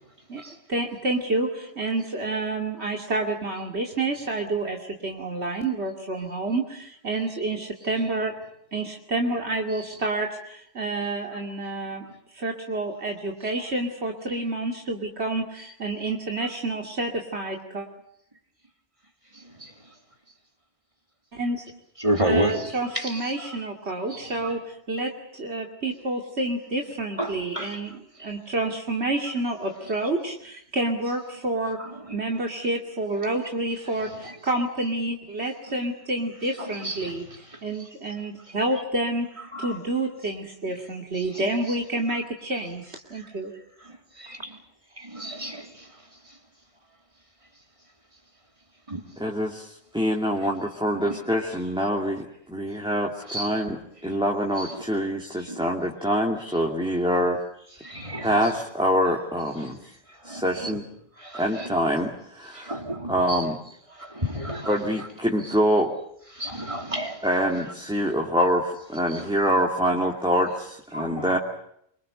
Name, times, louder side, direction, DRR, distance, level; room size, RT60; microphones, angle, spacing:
voice 1, 0.7-8.3 8.7-12.0 12.3-17.9 21.3-21.6 22.2-31.8 32.1-37.2 37.6-43.5, right 2 dB, 75° right, 2.9 m, -29 dB
voice 2, 22.0-22.6 23.0-23.2 24.1-24.2 27.2-27.8 34.2-34.3 36.6-37.1 39.5-39.8 41.3-41.4 44.2-44.6 45.0-45.7 48.9-49.0 51.1-51.2 53.3-53.5 55.5-55.6 57.8-58.3 60.2-60.8 61.2-61.7 62.5-63.4 64.0-64.7 66.3-67.2 69.1-69.2 70.9-71.3, right 1 dB, 30° right, 3.7 m, -30 dB
voice 3, 49.2-57.4 58.2-59.8 60.2-60.9 61.3-62.8 63.1-63.6 64.6-65.9 67.2-71.4, equal, 5° right, 2.7 m, -25 dB
26.5 x 24.5 x 6.8 m
omnidirectional pair, 1.1 m